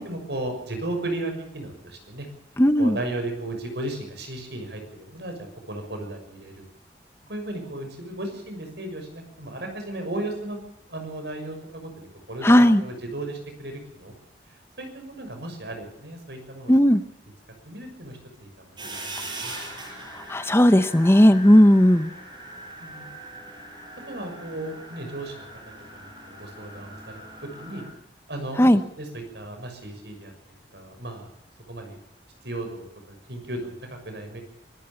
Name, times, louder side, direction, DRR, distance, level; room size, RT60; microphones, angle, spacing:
voice 1, 0.0-2.3 2.8-6.7 7.3-14.1 14.5-16.7 17.6-19.5 22.8-23.1 24.1-25.5 25.9-27.8 28.3-28.7 28.9-30.3 30.7-31.3 31.7-32.0 32.4-34.4, right 1 dB, 70° right, 5 dB, 6.4 m, -35 dB
voice 2, 2.6-3.0 12.4-12.8 16.7-17.0 19.5-19.7 20.1-22.1 28.6-28.8, equal, 15° left, 11 dB, 0.8 m, -16 dB
sound 1, 18.8-27.9, right 1 dB, 25° right, 6.4 m, -41 dB
24.5 x 15.0 x 7.1 m, 0.77 s
head